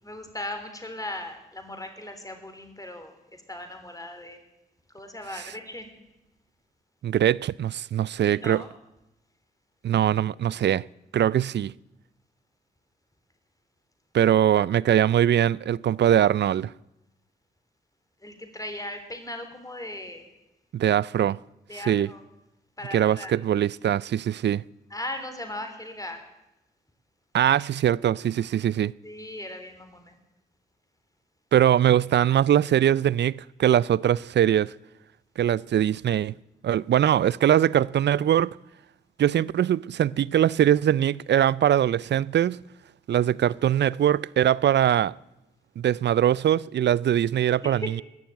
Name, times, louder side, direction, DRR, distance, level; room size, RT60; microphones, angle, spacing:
voice 1, 0.0-3.2 3.5-4.4 4.9-5.9 8.2-8.7 18.2-20.3 21.7-22.2 22.8-23.3 24.9-26.2 29.0-30.2 47.6-48.0, left 1 dB, 15° left, 3.4 m, -38 dB
voice 2, 7.0-8.6 9.8-10.8 11.1-11.7 14.1-16.7 20.7-21.4 21.9-22.1 22.9-24.6 27.3-28.9 31.5-34.7 35.4-36.3 36.6-38.6 39.2-42.6 43.1-45.1 45.8-48.0, right 10 dB, 60° right, 0.4 m, -22 dB
19.0 x 7.1 x 8.9 m
supercardioid pair, 40°, 20 cm